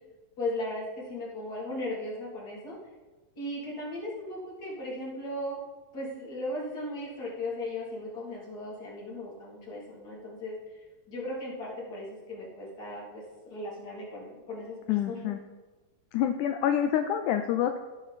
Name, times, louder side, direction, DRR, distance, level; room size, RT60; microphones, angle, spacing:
voice 1, 0.4-2.8 3.4-5.6 5.9-10.5 11.1-15.2, left 1 dB, 30° left, -5 dB, 3.0 m, -37 dB
voice 2, 14.9-15.4 16.1-17.8, left 10 dB, 80° left, 7 dB, 1.8 m, -27 dB
17.0 x 6.2 x 4.2 m, 1.2 s
omnidirectional pair, 4.0 m